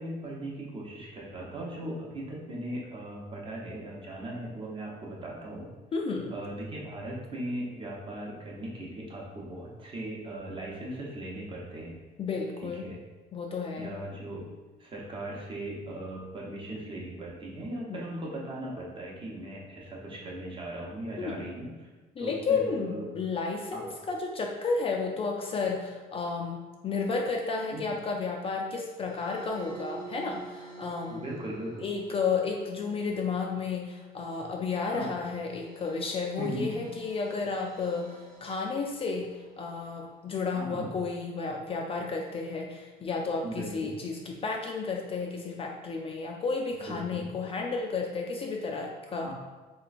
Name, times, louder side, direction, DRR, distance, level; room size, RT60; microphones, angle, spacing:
voice 1, 0.0-5.7 6.3-12.0 12.6-13.0 13.8-14.5 14.8-21.9 22.2-23.1 23.7-23.9 27.7-27.9 31.1-31.9 34.9-35.2 36.4-36.7 40.5-40.9 43.4-43.9 46.9-47.3 49.1-49.3, right 1 dB, 30° right, -3 dB, 0.8 m, -38 dB
voice 2, 5.9-6.3 12.2-12.9 13.3-14.0 17.9-18.0 21.2-21.4 22.2-31.2 31.8-49.3, left 4 dB, 35° left, 1 dB, 0.4 m, -32 dB
sound 1, 28.9-40.3, right 2 dB, 80° right, 0.7 m, -49 dB
3.1 x 3.0 x 2.5 m, 1.3 s
cardioid pair, 110°, 17 cm